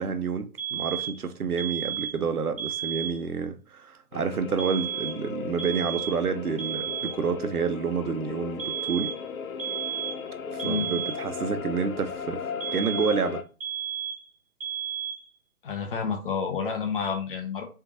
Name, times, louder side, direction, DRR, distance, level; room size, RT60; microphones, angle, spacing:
voice 1, 0.0-9.1 10.5-13.4, right 6 dB, 80° right, 0.7 m, -29 dB
sound 1, 0.6-1.2 1.6-2.2 2.6-3.2 4.6-5.3 5.6-6.3 6.6-7.3 8.6-9.3 9.6-10.3 10.6-11.3 12.6-13.3 13.6-14.3 14.6-15.3, right 9 dB, 25° right, 0.7 m, -33 dB
sound 2, 4.1-13.4, left 6 dB, 70° left, 0.6 m, -36 dB
voice 2, 15.6-17.6, left 6 dB, 40° left, 0.9 m, -29 dB
3.7 x 3.4 x 2.7 m
figure-of-eight pair, 130°, 44 cm